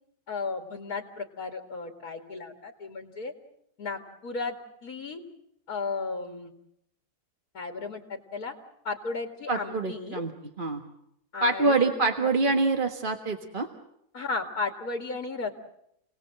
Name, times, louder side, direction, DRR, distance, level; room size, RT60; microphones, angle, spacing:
voice 1, 0.3-3.3 3.8-4.6 4.8-5.2 5.7-6.5 7.5-8.5 8.8-10.2 11.3-11.9 12.2-12.3 14.1-15.5, left 4 dB, 70° left, 4 dB, 2.6 m, -34 dB
voice 2, 9.5-10.3 10.6-10.8 11.4-13.7, right 3 dB, 35° right, 4 dB, 1.6 m, -25 dB
29.5 x 19.5 x 7.7 m, 0.77 s
omnidirectional pair, 1.6 m